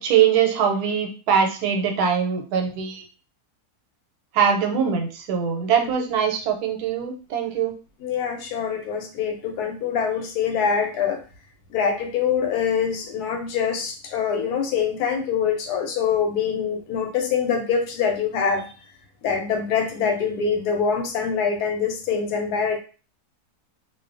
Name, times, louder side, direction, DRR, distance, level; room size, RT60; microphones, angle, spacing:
voice 1, 0.0-3.0 4.3-7.7, right 7 dB, 85° right, 3 dB, 1.1 m, -22 dB
voice 2, 8.0-11.2 11.7-18.7 19.2-22.8, left 6 dB, 85° left, 4 dB, 1.1 m, -24 dB
2.5 x 2.2 x 2.4 m, 0.36 s
omnidirectional pair, 1.6 m